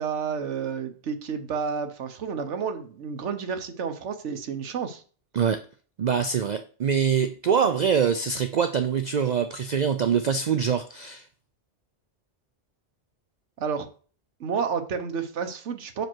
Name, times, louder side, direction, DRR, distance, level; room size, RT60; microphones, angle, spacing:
voice 1, 0.0-5.0 13.6-13.9 14.4-16.1, right 6 dB, 75° right, 8 dB, 1.3 m, -30 dB
voice 2, 6.0-11.2, right 7 dB, 55° right, 9 dB, 0.5 m, -24 dB
6.2 x 5.0 x 4.5 m, 0.39 s
omnidirectional pair, 1.2 m